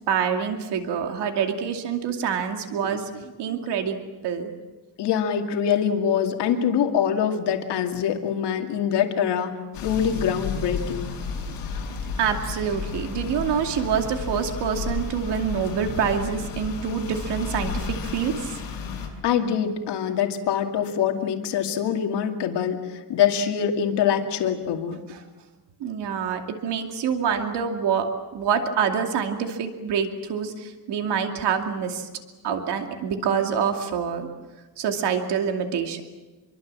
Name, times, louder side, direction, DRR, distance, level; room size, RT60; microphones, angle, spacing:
voice 1, 0.1-4.5 12.2-18.6 25.1-25.2 25.8-32.1 32.4-34.3 34.8-36.0, right 7 dB, 75° right, 4 dB, 2.6 m, -26 dB
voice 2, 5.0-11.1 19.2-25.0, left 8 dB, 75° left, 4 dB, 2.6 m, -24 dB
sound 1, 9.7-19.1, left 5 dB, 55° left, 6.5 m, -32 dB
26.5 x 23.5 x 7.6 m, 1.2 s
cardioid pair, 175°, 41 cm